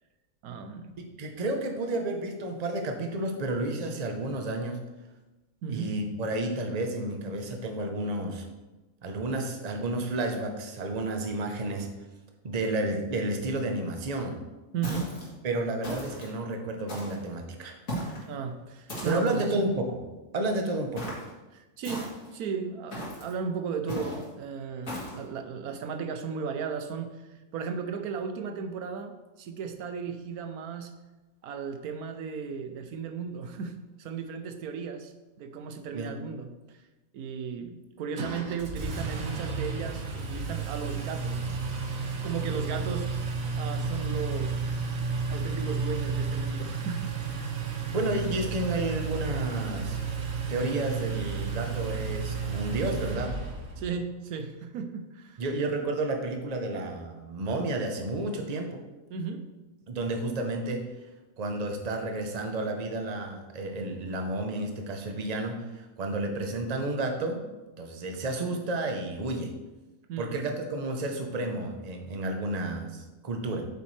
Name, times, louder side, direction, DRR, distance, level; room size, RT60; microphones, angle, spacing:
voice 1, 0.4-1.0 5.6-6.0 14.7-15.2 18.3-19.5 21.5-27.1 27.5-30.9 31.4-35.1 35.4-36.5 37.1-41.6 42.2-43.1 43.6-44.6 45.3-47.2 53.8-55.4 59.1-59.5 70.1-70.4, right 6 dB, 85° right, 7 dB, 1.2 m, -35 dB
voice 2, 1.0-4.8 5.7-8.4 9.0-11.9 12.4-14.4 15.4-17.8 19.0-20.0 20.3-21.1 35.9-36.1 47.9-50.0 50.5-53.3 55.4-58.8 59.9-60.8 61.4-67.4 67.8-69.5 70.2-73.6, right 2 dB, 35° right, 4 dB, 0.8 m, -31 dB
sound 1, 14.8-15.3 15.8-16.3 16.9-17.3 17.9-18.3 18.9-19.4 21.0-21.3 21.8-22.3 22.9-23.3 23.9-24.2 24.9-25.2, equal, 65° left, 2.5 m, -36 dB
Engine, 38.2-53.9, right 5 dB, 70° right, 1.4 m, -32 dB
8.3 x 6.8 x 3.3 m, 1.1 s
omnidirectional pair, 1.5 m